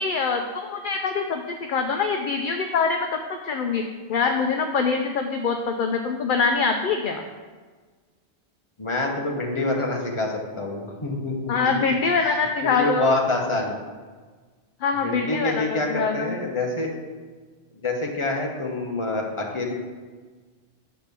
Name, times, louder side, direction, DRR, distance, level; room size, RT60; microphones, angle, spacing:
voice 1, 0.0-3.2 3.4-3.8 4.1-7.2 11.5-13.1 14.8-16.3, left 5 dB, 60° left, 5 dB, 0.6 m, -24 dB
voice 2, 8.8-11.6 12.6-13.7 15.0-16.9 17.8-19.7, left 2 dB, 30° left, 0 dB, 1.1 m, -26 dB
7.0 x 4.3 x 6.7 m, 1.4 s
omnidirectional pair, 1.1 m